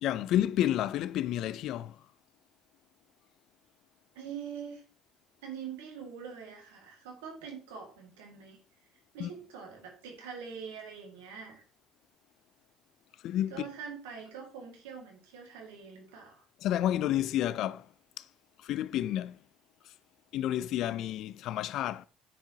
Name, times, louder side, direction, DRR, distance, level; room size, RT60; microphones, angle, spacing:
voice 1, 0.0-2.0 9.2-9.3 13.2-13.7 16.6-17.9 18.2-18.3 18.6-19.4 20.3-22.1, left 12 dB, 65° left, 0.3 m, -30 dB
voice 2, 4.2-4.8 5.4-8.6 9.1-11.6 13.5-16.4, right 7 dB, 90° right, 1.9 m, -44 dB
9.7 x 4.5 x 2.8 m
supercardioid pair, 75°, 0 cm